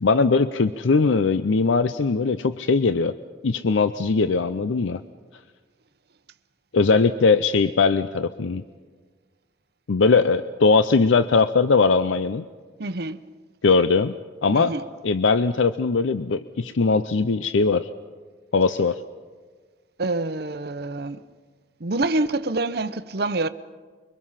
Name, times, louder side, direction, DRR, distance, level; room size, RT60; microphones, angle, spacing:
voice 1, 0.0-3.1 3.4-5.0 6.7-8.6 9.9-12.4 13.6-14.1 14.4-14.7 15.0-17.9 18.5-19.0, left 4 dB, 80° left, 0.6 m, -20 dB
voice 2, 12.8-13.2 14.5-14.8 20.0-21.2 21.8-23.5, right 2 dB, 55° right, 0.8 m, -26 dB
25.0 x 23.5 x 5.7 m
head